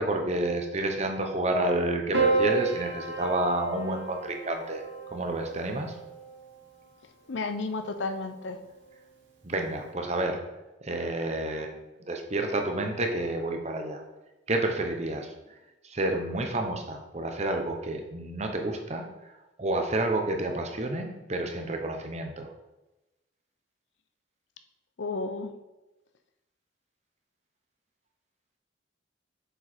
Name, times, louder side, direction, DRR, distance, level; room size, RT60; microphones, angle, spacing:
voice 1, 0.0-4.8 5.1-5.9 9.4-10.4 10.8-11.8 12.1-14.0 14.5-15.3 15.8-19.3 19.6-22.5, right 2 dB, 35° right, 3 dB, 0.9 m, -29 dB
Piano, 2.1-6.6 7.8-8.5, right 4 dB, 90° right, 1.3 m, -31 dB
voice 2, 7.3-8.6 25.0-25.5, left 3 dB, 80° left, 8 dB, 0.6 m, -32 dB
6.7 x 4.7 x 4.4 m, 1.0 s
head